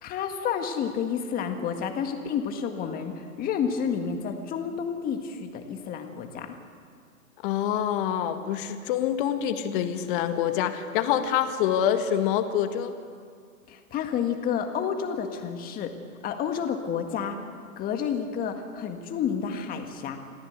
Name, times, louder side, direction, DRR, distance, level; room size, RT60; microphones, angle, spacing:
voice 1, 0.0-6.6 13.7-15.9 16.2-17.4 17.8-20.2, left 7 dB, 20° left, 5 dB, 1.8 m, -30 dB
voice 2, 7.4-13.0, left 9 dB, 35° left, 8 dB, 1.7 m, -26 dB
25.0 x 15.5 x 8.2 m, 2.1 s
hypercardioid pair, 140°, 44 cm